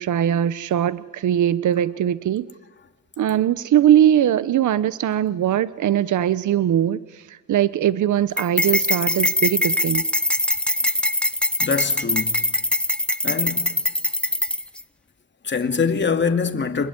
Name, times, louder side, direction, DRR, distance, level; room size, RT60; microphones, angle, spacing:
voice 1, 0.0-2.5 3.2-10.0, right 10 dB, 70° right, 0.9 m, -20 dB
sound 1, 8.4-14.8, left 1 dB, 5° left, 0.8 m, -22 dB
voice 2, 11.6-12.5 13.2-13.8 15.4-16.9, left 5 dB, 35° left, 2.4 m, -24 dB
28.0 x 21.5 x 9.7 m
cardioid pair, 95°, 31 cm